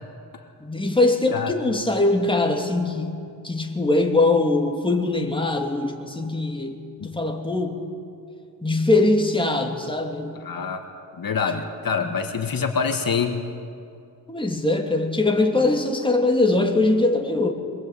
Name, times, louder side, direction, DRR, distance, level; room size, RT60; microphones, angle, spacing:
voice 1, 0.6-6.8 7.0-7.8 8.6-10.4 12.0-12.2 14.3-17.5, left 2 dB, 15° left, 3 dB, 2.8 m, -22 dB
voice 2, 10.4-10.8 11.2-13.4, left 5 dB, 60° left, 5 dB, 1.9 m, -25 dB
24.5 x 20.0 x 8.5 m, 2.5 s
cardioid pair, 70°, 39 cm